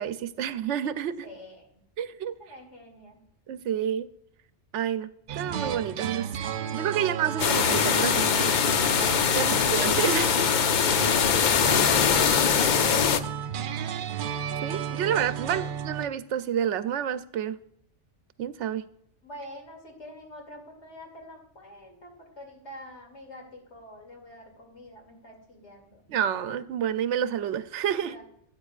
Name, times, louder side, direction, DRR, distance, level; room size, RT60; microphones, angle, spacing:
voice 1, 0.0-1.3 2.0-2.3 3.5-4.1 4.7-6.3 6.7-8.5 9.3-10.5 14.6-17.6 18.4-18.8 26.1-28.2, right 9 dB, 85° right, 0.9 m, -29 dB
voice 2, 1.2-1.8 2.4-3.2 10.9-14.2 15.4-15.7 19.2-26.1 28.0-28.2, equal, 75° left, 2.9 m, -46 dB
sound 1, 5.3-16.1, right 8 dB, 60° right, 0.6 m, -33 dB
sound 2, 7.4-13.2, left 7 dB, 55° left, 0.6 m, -22 dB
13.5 x 8.9 x 2.4 m
omnidirectional pair, 1.2 m